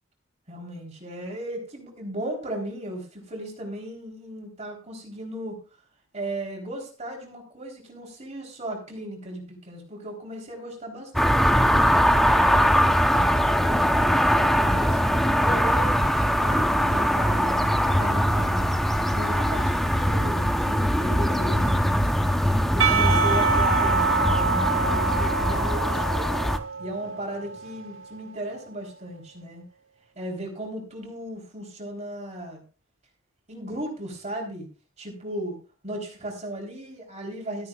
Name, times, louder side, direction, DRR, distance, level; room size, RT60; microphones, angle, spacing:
voice 1, 0.5-5.6 6.1-11.8 12.3-15.0 15.4-18.8 19.1-22.1 22.7-26.3 26.8-29.6 30.2-32.6 33.5-34.7 35.0-35.6 35.8-37.7, right 1 dB, 35° right, 0 dB, 3.7 m, -36 dB
sound 1, 11.1-26.6, equal, ahead, 0.8 m, -22 dB
Percussion / Church bell, 22.8-28.0, right 5 dB, 75° right, 1.1 m, -26 dB
15.5 x 13.5 x 2.4 m, 0.35 s
head